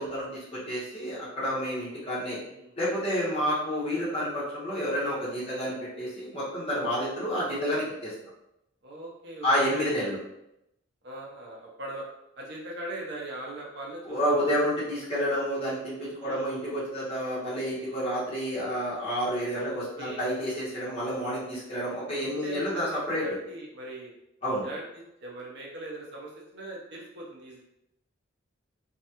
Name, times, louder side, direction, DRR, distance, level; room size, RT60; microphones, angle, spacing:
voice 1, 0.0-2.4 2.8-8.1 9.4-10.2 14.0-23.3 24.4-24.6, equal, 30° left, -9 dB, 1.4 m, -29 dB
voice 2, 2.3-2.8 7.1-7.2 8.8-10.0 11.0-12.1 12.4-14.6 16.2-16.7 19.5-20.5 22.4-24.1 24.6-27.6, right 2 dB, 60° right, -3 dB, 0.7 m, -41 dB
3.2 x 2.4 x 2.9 m, 0.83 s
head